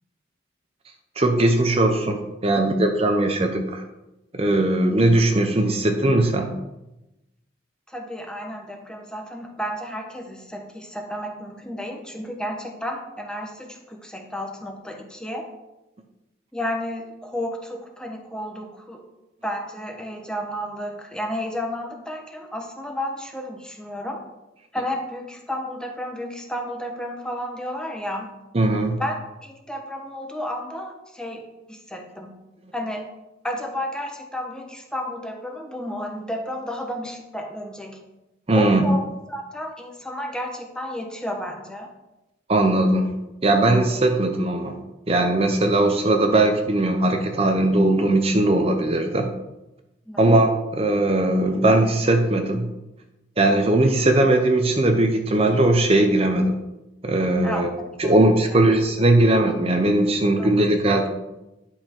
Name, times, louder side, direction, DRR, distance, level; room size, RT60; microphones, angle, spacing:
voice 1, 1.2-3.8 4.3-6.5 28.5-29.0 38.5-38.8 42.5-44.8 45.1-49.3 50.2-52.7 53.4-56.5 57.0-57.7 58.0-61.1, right 1 dB, 30° right, 5 dB, 0.8 m, -19 dB
voice 2, 7.9-15.5 16.5-19.0 19.4-24.2 24.7-28.3 29.0-29.2 29.4-32.3 32.7-33.1 33.4-38.0 38.5-41.9 50.1-50.3 57.4-57.6 58.0-58.1 58.4-58.7 60.4-60.5, equal, 5° left, 2 dB, 1.0 m, -32 dB
10.5 x 5.8 x 4.4 m, 0.96 s
head